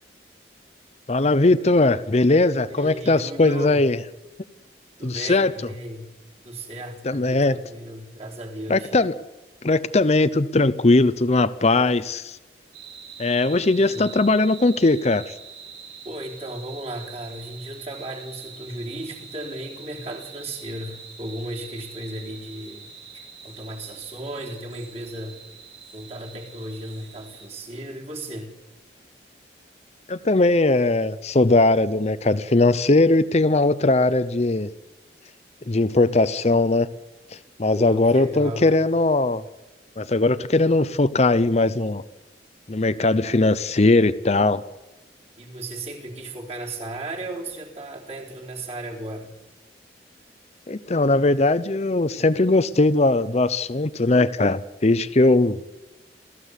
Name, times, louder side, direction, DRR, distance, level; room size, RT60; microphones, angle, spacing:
voice 1, 1.1-4.0 5.0-5.5 7.0-7.6 8.7-9.1 9.6-12.4 13.2-15.3 30.1-34.7 35.7-36.9 37.3-39.4 40.0-42.0 42.7-44.6 50.7-55.6, left 2 dB, 35° left, 12 dB, 0.7 m, -19 dB
voice 2, 2.7-3.9 5.0-6.1 6.4-8.9 13.7-14.1 16.0-25.4 25.9-28.5 37.7-38.8 45.4-49.3, right 1 dB, 35° right, -1 dB, 4.0 m, -35 dB
sound 1, 12.7-27.5, right 6 dB, 85° right, 6.1 m, -44 dB
29.0 x 14.5 x 8.3 m, 1.1 s
head